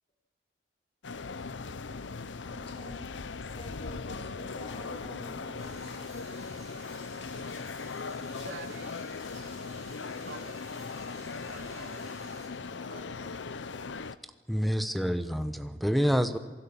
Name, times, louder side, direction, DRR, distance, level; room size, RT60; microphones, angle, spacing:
sound 1, 1.0-14.2, left 4 dB, 80° left, 0.8 m, -39 dB
voice 1, 2.5-3.0 3.5-6.3, left 2 dB, 35° left, 1 dB, 4.1 m, -48 dB
sound 2, 5.6-12.5, right 5 dB, 40° right, 8.0 m, -54 dB
voice 2, 8.4-9.6 10.3-10.9 11.1-12.2 12.7-14.0, right 3 dB, 70° right, 4 dB, 2.8 m, -49 dB
voice 3, 14.5-16.4, equal, ahead, 9 dB, 1.1 m, -27 dB
27.5 x 18.0 x 7.2 m, 1.4 s
head